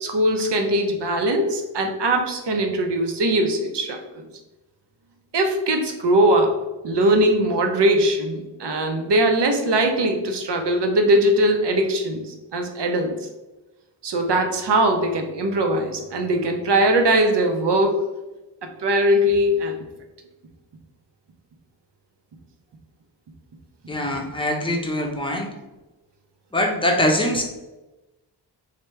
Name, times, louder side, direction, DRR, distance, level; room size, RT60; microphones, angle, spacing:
voice 1, 0.0-4.2 5.3-6.5 6.8-13.1 14.0-18.0 18.8-19.8, right 1 dB, 65° right, 4 dB, 0.8 m, -20 dB
voice 2, 23.9-25.5 26.5-27.4, left 1 dB, 10° left, 1 dB, 0.6 m, -23 dB
3.3 x 2.9 x 4.4 m, 1.1 s
wide cardioid pair, 150°, 44 cm